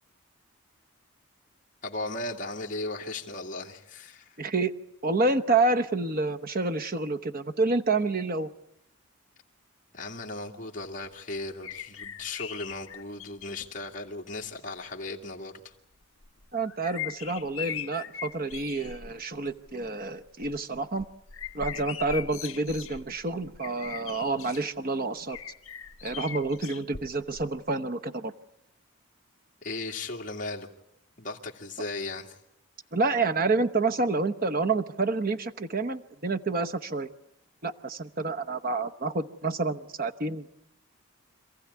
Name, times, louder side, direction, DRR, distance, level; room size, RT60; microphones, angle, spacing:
voice 1, 1.8-4.4 9.9-15.7 29.6-30.7 31.2-32.4, left 2 dB, 35° left, 0 dB, 2.3 m, -37 dB
voice 2, 4.4-4.7 5.0-8.5 16.5-21.1 21.5-25.4 26.0-28.3 32.9-37.1 37.6-40.5, right 3 dB, 40° right, 7 dB, 0.9 m, -28 dB
sound 1, 11.6-13.7 14.5-14.6 16.2-19.1 19.5-19.9 20.3-24.6 25.3-27.4 27.7-27.8, left 9 dB, 70° left, 1.6 m, -40 dB
27.0 x 15.0 x 9.6 m, 0.82 s
head